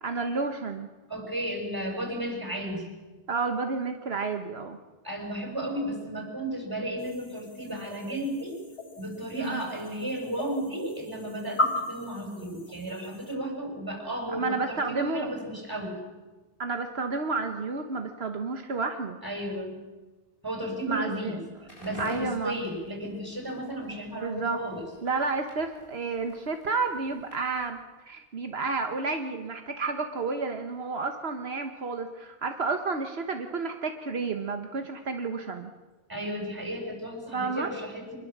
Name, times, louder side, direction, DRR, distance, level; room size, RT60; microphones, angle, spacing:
voice 1, 0.0-0.9 3.3-4.8 9.4-9.6 14.3-15.3 16.6-19.2 20.9-21.4 22.0-22.6 24.2-24.6 25.0-27.8 28.0-35.7 37.3-37.7, right 4 dB, 75° right, 5 dB, 1.5 m, -31 dB
voice 2, 1.1-2.9 5.0-8.6 9.0-16.0 19.2-19.8 20.4-21.4 21.8-24.8 36.1-38.2, right 1 dB, 20° right, 1 dB, 6.5 m, -34 dB
sound 1, 7.0-13.3, left 1 dB, 80° left, 2.8 m, -36 dB
Crackle, 21.6-27.7, equal, 60° left, 7.9 m, -50 dB
25.0 x 21.5 x 7.3 m, 1.3 s
omnidirectional pair, 1.0 m